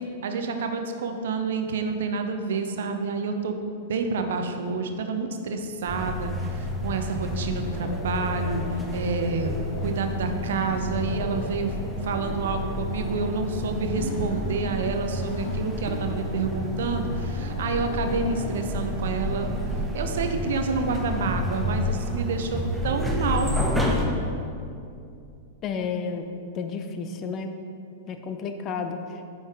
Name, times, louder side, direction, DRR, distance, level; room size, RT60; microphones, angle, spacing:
voice 1, 0.2-3.6 3.9-11.7 12.0-19.5 19.9-23.6, right 4 dB, 60° right, 6 dB, 0.6 m, -28 dB
sound 1, 5.9-24.1, left 1 dB, ahead, 0.9 m, -30 dB
Laughter, 7.7-18.6, left 2 dB, 75° left, 0.9 m, -39 dB
voice 2, 25.6-26.2 26.5-27.5 28.1-29.2, left 5 dB, 35° left, 7 dB, 0.6 m, -31 dB
9.4 x 5.5 x 3.5 m, 2.5 s
figure-of-eight pair, 95°, 0 cm